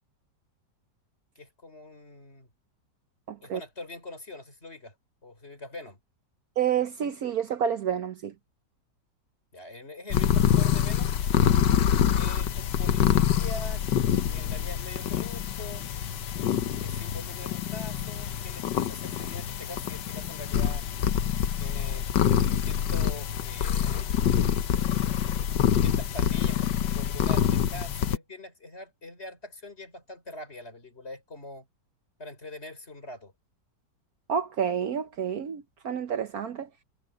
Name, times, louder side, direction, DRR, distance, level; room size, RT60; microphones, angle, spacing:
voice 1, 1.4-2.5 3.4-4.9 5.2-6.0 9.5-11.1 12.1-13.8 14.3-15.9 16.8-20.9 21.6-22.1 22.4-24.1 25.7-31.7 32.2-33.3, left 2 dB, 35° left, 4.8 m, -43 dB
voice 2, 3.3-3.6 6.6-8.3 34.3-36.7, right 8 dB, 60° right, 1.3 m, -29 dB
sound 1, 10.1-28.2, left 9 dB, 85° left, 1.6 m, -26 dB
omnidirectional pair, 1.9 m